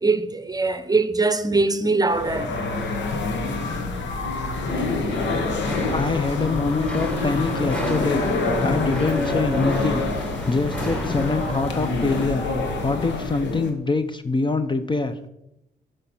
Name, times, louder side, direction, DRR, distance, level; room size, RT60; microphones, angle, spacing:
voice 1, 0.0-2.6, right 3 dB, 20° right, 0.8 m, -22 dB
sound 1, 2.1-13.7, left 3 dB, 80° left, 1.1 m, -26 dB
sound 2, 5.1-12.2, equal, 5° left, 1.4 m, -34 dB
voice 2, 5.9-8.2 8.6-10.0 10.5-12.5 12.8-15.1, left 3 dB, 25° left, 0.6 m, -24 dB
6.9 x 5.1 x 5.5 m
supercardioid pair, 55°, 19 cm